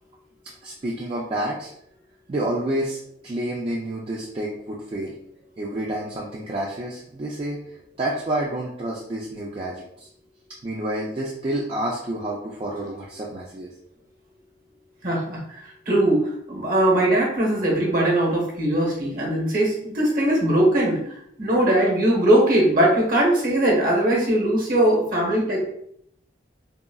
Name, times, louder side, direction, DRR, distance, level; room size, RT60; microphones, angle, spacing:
voice 1, 0.6-1.7 2.3-5.1 5.6-7.6 8.0-10.1 10.6-13.7, right 1 dB, 30° right, -4 dB, 0.3 m, -29 dB
voice 2, 15.0-25.6, right 1 dB, 45° right, -3 dB, 1.0 m, -20 dB
3.6 x 2.0 x 2.2 m, 0.71 s
head